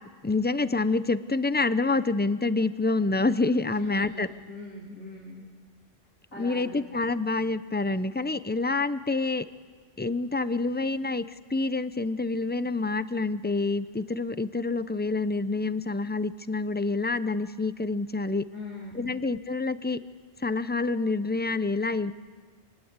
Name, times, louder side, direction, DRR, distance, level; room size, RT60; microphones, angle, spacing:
voice 1, 0.2-4.3 6.4-9.5 10.0-11.2 11.5-18.5 18.9-20.0 20.4-22.1, left 3 dB, 15° left, 13 dB, 0.3 m, -27 dB
voice 2, 3.7-5.5 6.3-6.8 18.5-19.1, left 2 dB, 60° left, -4 dB, 3.7 m, -42 dB
27.5 x 20.0 x 8.2 m, 1.5 s
omnidirectional pair, 1.3 m